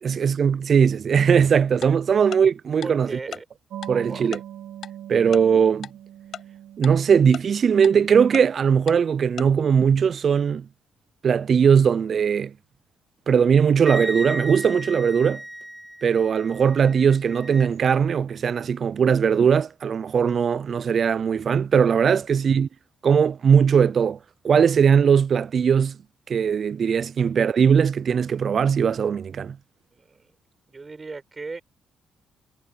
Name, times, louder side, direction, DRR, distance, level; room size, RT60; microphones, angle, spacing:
voice 1, 0.0-3.1 3.9-4.4 5.1-5.9 6.8-10.7 11.2-12.5 13.3-15.4 16.0-22.7 23.0-24.2 24.4-26.0 26.3-29.6, right 7 dB, 50° right, 0.3 m, -19 dB
Tick-tock, 1.8-1.9 2.3-2.4 2.8-2.9 3.3-3.4 3.8-3.9 4.3-4.4 4.8-4.9 5.3-5.4 5.8-5.9 6.3-6.4 6.8-6.9 7.3-7.4 7.8-7.9 8.3-8.4 8.9-9.0 9.4-9.5, left 9 dB, 65° left, 5.5 m, -35 dB
voice 2, 2.8-3.5 3.9-4.3 29.9-30.3 30.7-31.6, right 4 dB, 30° right, 5.7 m, -37 dB
sound 1, 3.7-9.9, right 11 dB, 80° right, 1.3 m, -42 dB
Wind instrument woodwind instrument, 13.8-17.7, equal, 5° right, 6.2 m, -35 dB
cardioid pair, 90°, 0 cm